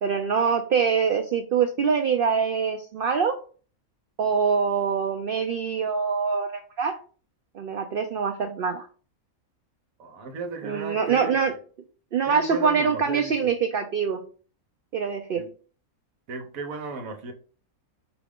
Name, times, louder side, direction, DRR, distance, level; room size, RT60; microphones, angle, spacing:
voice 1, 0.0-3.4 4.2-7.0 7.5-8.8 10.6-11.5 12.1-14.2 14.9-15.4, right 6 dB, 90° right, 0.4 m, -24 dB
voice 2, 10.0-11.6 12.2-13.5 15.3-15.5 16.3-17.3, right 3 dB, 70° right, 1.2 m, -35 dB
4.9 x 2.4 x 3.5 m
omnidirectional pair, 1.5 m